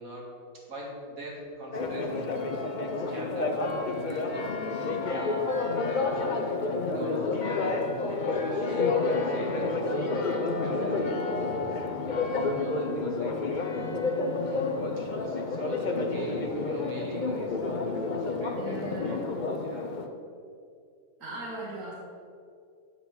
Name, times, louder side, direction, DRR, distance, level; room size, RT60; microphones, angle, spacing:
voice 1, 0.0-4.3 4.6-11.5 12.0-14.2 14.5-14.7 15.0-19.2 19.6-19.9, equal, 70° right, -2 dB, 2.5 m, -43 dB
Church bell, 1.7-20.1, left 3 dB, 40° left, 0.9 m, -29 dB
voice 2, 18.6-19.9 21.2-21.9, right 2 dB, 85° right, -4 dB, 2.1 m, -40 dB
9.9 x 7.7 x 5.9 m, 2.3 s
omnidirectional pair, 1.5 m